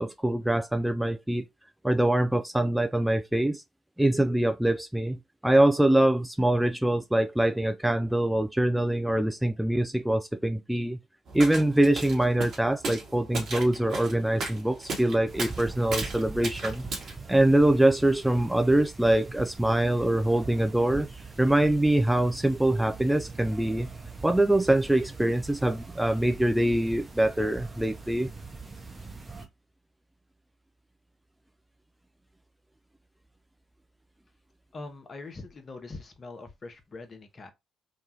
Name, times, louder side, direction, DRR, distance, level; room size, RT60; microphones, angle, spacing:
voice 1, 0.0-1.4 1.8-3.6 4.0-11.0 11.3-16.8 17.3-21.1 21.4-23.9 24.2-28.3, right 1 dB, 5° right, 0.3 m, -24 dB
sound 1, 11.3-17.1, right 3 dB, 60° right, 1.0 m, -36 dB
sound 2, 15.3-29.5, right 4 dB, 25° right, 0.7 m, -42 dB
voice 2, 34.7-37.5, left 3 dB, 40° left, 0.7 m, -42 dB
2.9 x 2.3 x 2.7 m
figure-of-eight pair, 45°, 0 cm